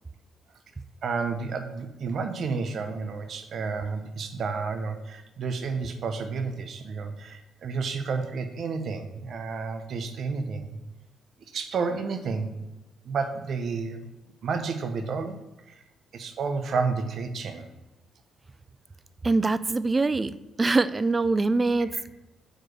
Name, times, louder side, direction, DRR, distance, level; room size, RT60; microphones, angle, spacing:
voice 1, 1.0-10.8 11.5-12.5 13.0-14.0 14.4-15.4 15.7-15.8 16.1-17.7, right 4 dB, 60° right, 7 dB, 0.8 m, -31 dB
voice 2, 19.2-22.1, right 3 dB, 25° right, 15 dB, 0.3 m, -24 dB
4.9 x 4.5 x 6.1 m, 1.0 s
cardioid pair, 90°, 0 cm